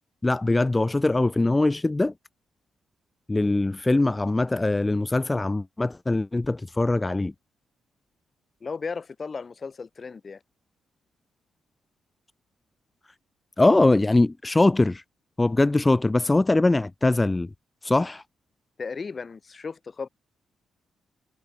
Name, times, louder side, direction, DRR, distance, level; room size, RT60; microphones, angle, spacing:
voice 1, 0.2-2.1 3.3-7.3 13.6-15.0 15.4-17.5 17.8-18.2, left 2 dB, 20° left, 0.5 m, -22 dB
voice 2, 8.6-10.4 18.8-20.1, left 5 dB, 40° left, 1.1 m, -35 dB
supercardioid pair, 60°, 0 cm